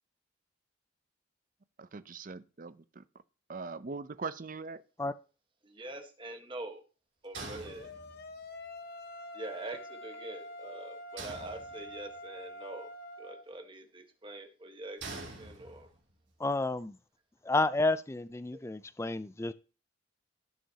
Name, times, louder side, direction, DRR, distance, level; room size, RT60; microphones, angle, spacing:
voice 1, 1.8-3.0 3.5-4.8, right 4 dB, 40° right, 0.5 m, -41 dB
voice 2, 5.6-6.8 7.2-7.9 9.3-12.9 13.2-15.9 18.5-18.6, right 2 dB, 25° right, 1.3 m, -44 dB
sound 1, 7.3-8.4 11.2-12.2 15.0-16.1, right 3 dB, 60° right, 2.9 m, -45 dB
sound 2, 7.7-13.4, left 1 dB, 50° left, 0.9 m, -46 dB
voice 3, 16.4-17.0 17.4-19.5, left 2 dB, 15° left, 0.3 m, -30 dB
15.5 x 6.2 x 2.8 m
head